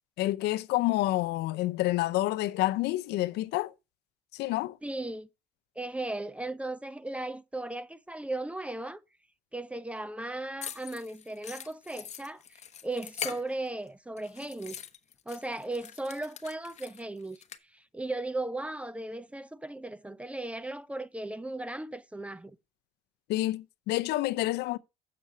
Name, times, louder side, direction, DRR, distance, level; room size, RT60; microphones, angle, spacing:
voice 1, 0.2-3.7 4.3-4.8 23.3-24.8, left 17 dB, 80° left, 0.5 m, -28 dB
voice 2, 4.8-5.3 5.8-9.0 9.5-14.8 15.3-17.4 17.7-22.6, right 2 dB, 5° right, 0.5 m, -36 dB
sound 1, 10.6-13.9 14.2-17.6, left 8 dB, 40° left, 0.9 m, -42 dB
7.6 x 6.6 x 4.8 m
cardioid pair, 110°, 17 cm